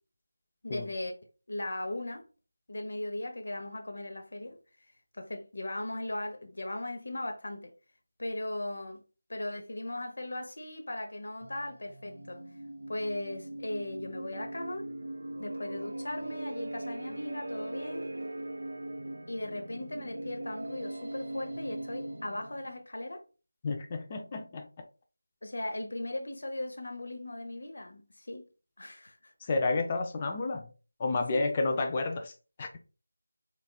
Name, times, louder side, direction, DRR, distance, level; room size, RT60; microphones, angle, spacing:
voice 1, 0.6-1.1 1.5-2.2 2.7-4.6 5.1-7.7 8.2-9.0 9.3-12.4 12.9-14.9 15.4-18.1 19.3-23.2 25.4-28.4 28.8-29.3 31.3-31.4, left 1 dB, 60° left, 0.9 m, -38 dB
sound 1, 11.4-22.8, right 1 dB, 65° right, 0.6 m, -40 dB
voice 2, 23.6-24.7 29.5-30.7 31.0-32.3 32.6-32.8, left 3 dB, 25° left, 0.5 m, -30 dB
4.1 x 3.3 x 2.3 m
figure-of-eight pair, 165°, 0 cm